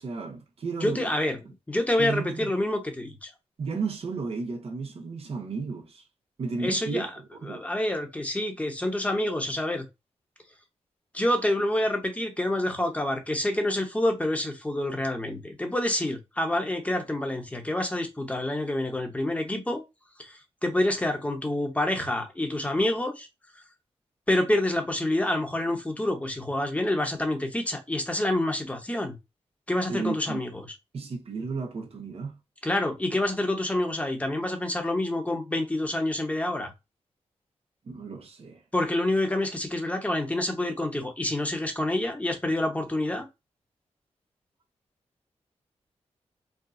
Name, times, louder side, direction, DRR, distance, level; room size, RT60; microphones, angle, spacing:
voice 1, 0.0-1.1 2.0-2.5 3.6-6.0 6.4-7.1 7.4-7.7 29.9-30.4 30.9-32.4 37.8-38.6, right 4 dB, 60° right, 1.2 m, -33 dB
voice 2, 0.8-1.4 1.7-3.3 6.6-7.1 7.5-9.8 11.1-19.8 20.2-23.3 24.3-29.2 29.7-30.7 32.6-36.7 38.7-43.3, left 1 dB, 10° left, 1.1 m, -27 dB
4.8 x 2.3 x 2.5 m
wide cardioid pair, 120°, 11 cm